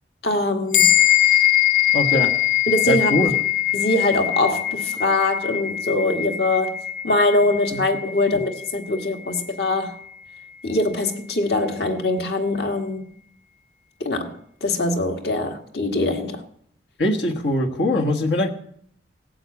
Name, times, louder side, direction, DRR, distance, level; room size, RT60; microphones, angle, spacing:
voice 1, 0.2-0.9 2.7-3.4 3.7-10.0 10.6-13.1 14.0-16.4, left 2 dB, 65° left, 1.8 m, -23 dB
sound 1, 0.7-10.5, left 13 dB, 45° left, 2.9 m, -22 dB
voice 2, 1.9-2.3 2.9-3.3 7.7-7.8 8.3-8.4 17.0-18.5, left 1 dB, 80° left, 1.5 m, -22 dB
17.5 x 7.8 x 8.4 m
head